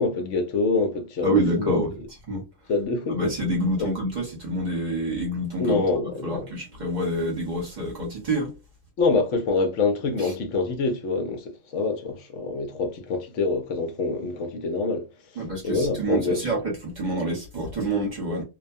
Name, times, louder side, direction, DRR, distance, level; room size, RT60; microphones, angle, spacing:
voice 1, 0.0-1.8 2.7-3.3 5.6-6.5 9.0-16.5, left 3 dB, 70° left, 0.9 m, -26 dB
voice 2, 1.2-1.9 2.3-2.4 3.1-5.8 6.2-8.5 15.4-18.4, right 1 dB, 40° right, 1.0 m, -27 dB
2.4 x 2.2 x 2.5 m
omnidirectional pair, 1.3 m